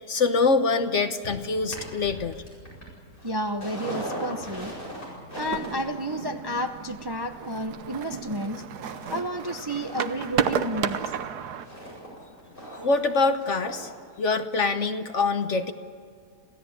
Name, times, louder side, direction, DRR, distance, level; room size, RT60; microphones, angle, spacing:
voice 1, 0.1-2.4 12.8-13.9 14.2-15.7, left 4 dB, 50° left, 9 dB, 1.2 m, -24 dB
sound 1, 1.2-8.4 8.8-9.2 9.5-14.0 14.3-14.4, equal, 30° left, 8.4 m, -40 dB
voice 2, 3.2-4.8 5.3-8.6 9.1-11.0, equal, 20° right, 6 dB, 0.7 m, -31 dB
sound 2, 5.4-11.7, right 8 dB, 75° right, 1.4 m, -32 dB
27.5 x 16.0 x 8.6 m, 2.2 s
omnidirectional pair, 1.7 m